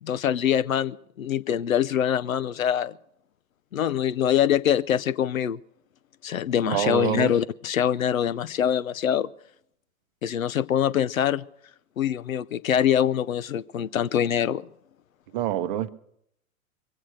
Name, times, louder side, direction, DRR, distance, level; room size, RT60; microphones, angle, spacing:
voice 1, 0.0-2.9 3.7-5.6 6.2-9.3 10.2-11.4 12.0-14.7, left 9 dB, 70° left, 0.6 m, -24 dB
voice 2, 6.6-7.3 15.3-15.9, right 12 dB, 40° right, 0.7 m, -26 dB
22.5 x 8.4 x 6.3 m
figure-of-eight pair, 100°, 42 cm